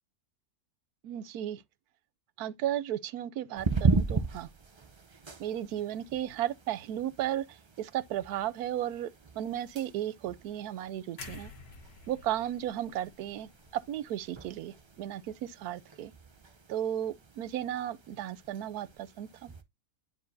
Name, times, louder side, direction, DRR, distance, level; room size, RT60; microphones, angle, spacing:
voice 1, 1.0-1.6 2.4-4.5 5.4-9.1 9.4-11.5 12.1-16.1 16.7-19.5, right 11 dB, 80° right, 1.1 m, -34 dB
sound 1, 3.6-19.6, right 4 dB, 45° right, 0.3 m, -37 dB
sound 2, 11.2-15.2 15.6-15.8, left 5 dB, 80° left, 1.8 m, -51 dB
9.7 x 4.6 x 2.6 m
omnidirectional pair, 1.6 m